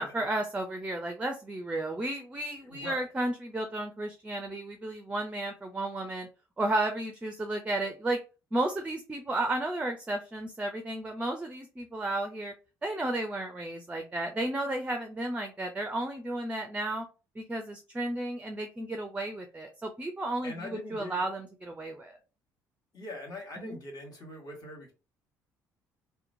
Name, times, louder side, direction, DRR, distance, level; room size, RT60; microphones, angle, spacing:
voice 1, 0.0-6.3 6.6-8.2 8.5-12.5 12.8-17.1 17.4-22.2 23.6-23.8, right 1 dB, 15° right, 6 dB, 0.4 m, -33 dB
voice 2, 2.6-3.1 20.4-21.3 22.9-24.9, left 1 dB, 45° left, 1 dB, 1.2 m, -42 dB
2.8 x 2.1 x 2.5 m, 0.33 s
hypercardioid pair, 55°, 9 cm